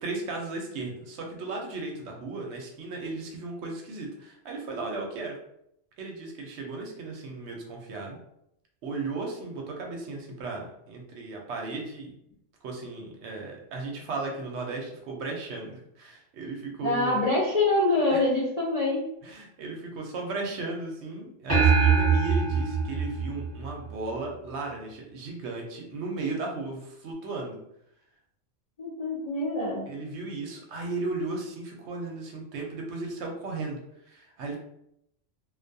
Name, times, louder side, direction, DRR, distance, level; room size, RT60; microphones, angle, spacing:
voice 1, 0.0-5.4 6.0-8.2 8.8-12.1 12.6-17.2 18.1-18.2 19.2-27.6 29.9-33.8 34.1-34.6, right 3 dB, 70° right, 0 dB, 0.8 m, -35 dB
voice 2, 16.8-19.1 28.8-29.8, left 2 dB, 55° left, -8 dB, 0.4 m, -25 dB
sound 1, 21.5-24.1, right 5 dB, 15° right, 1.1 m, -23 dB
2.3 x 2.2 x 2.5 m, 0.77 s
omnidirectional pair, 1.3 m